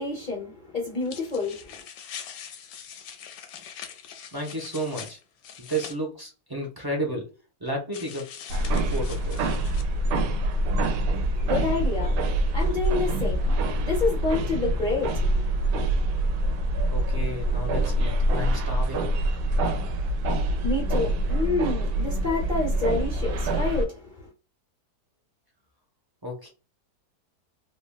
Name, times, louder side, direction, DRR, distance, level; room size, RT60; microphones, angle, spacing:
voice 1, 0.0-1.8 10.7-15.9 20.3-24.3, left 3 dB, 50° left, 0.6 m, -29 dB
sound 1, 1.0-6.0 7.9-9.8, left 8 dB, 70° left, 1.0 m, -43 dB
voice 2, 4.3-5.2 5.6-7.3 7.6-8.3 8.9-9.6 16.9-19.2 26.2-26.5, right 1 dB, 35° right, 0.4 m, -32 dB
sound 2, 8.5-23.9, right 1 dB, 85° right, 1.2 m, -25 dB
3.5 x 2.2 x 2.3 m
omnidirectional pair, 1.8 m